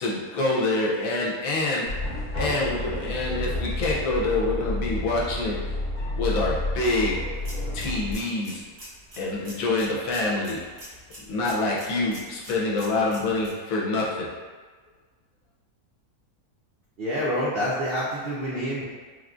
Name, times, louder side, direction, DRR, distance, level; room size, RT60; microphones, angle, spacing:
voice 1, 0.0-1.8 2.4-5.6 6.2-7.2 7.7-8.6 9.2-10.6 11.3-14.3, left 2 dB, 70° left, -4 dB, 1.0 m, -26 dB
sound 1, 1.9-8.1, left 1 dB, 35° left, 0.8 m, -30 dB
sound 2, 7.3-13.5, equal, 40° right, 0.9 m, -46 dB
voice 2, 17.0-18.8, equal, 75° right, -8 dB, 0.5 m, -27 dB
3.4 x 2.4 x 2.4 m, 1.4 s
omnidirectional pair, 1.6 m